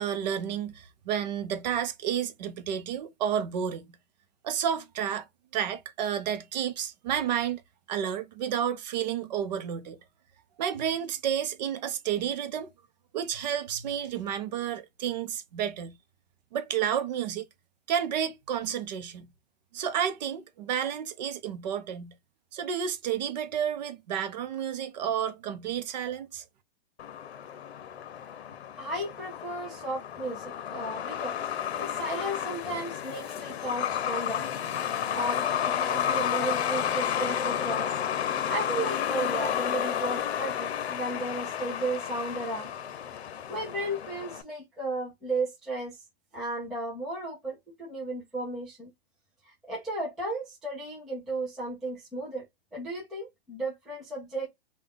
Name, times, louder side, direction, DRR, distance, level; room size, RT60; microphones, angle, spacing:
voice 1, 0.0-3.8 4.4-5.3 5.5-7.6 7.9-10.0 10.6-12.7 13.1-16.0 16.5-17.5 17.9-19.3 19.7-22.1 22.5-26.4, right 9 dB, 45° right, 0.6 m, -31 dB
Truck, 27.0-44.4, left 9 dB, 80° left, 0.8 m, -31 dB
voice 2, 28.8-31.4 31.7-34.5 35.1-37.9 38.3-42.7 43.5-46.0 46.3-48.9 49.5-52.5 52.7-54.5, right 2 dB, ahead, 0.3 m, -34 dB
3.8 x 2.3 x 3.5 m
hypercardioid pair, 160°, 32 cm